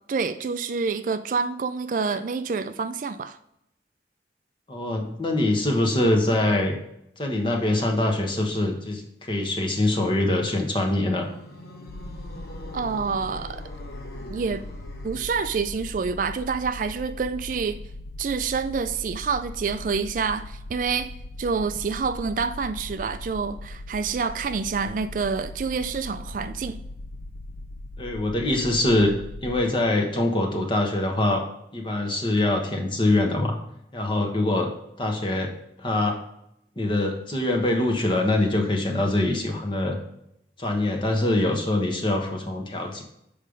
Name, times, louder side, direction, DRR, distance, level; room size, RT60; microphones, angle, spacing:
voice 1, 0.1-3.4 12.7-13.6 14.3-14.6 15.0-17.8 18.2-21.1 21.4-26.8, right 5 dB, 45° right, 0.3 m, -27 dB
voice 2, 4.7-6.8 7.2-11.3 28.0-29.1 29.4-31.4 31.7-33.6 33.9-34.7 35.0-35.5 35.8-36.2 36.8-40.0 40.6-43.0, left 1 dB, 25° left, 1.2 m, -24 dB
sound 1, 10.9-15.6, equal, 55° left, 1.1 m, -43 dB
sound 2, 11.9-29.7, left 1 dB, 80° left, 0.5 m, -39 dB
7.6 x 5.2 x 5.1 m
head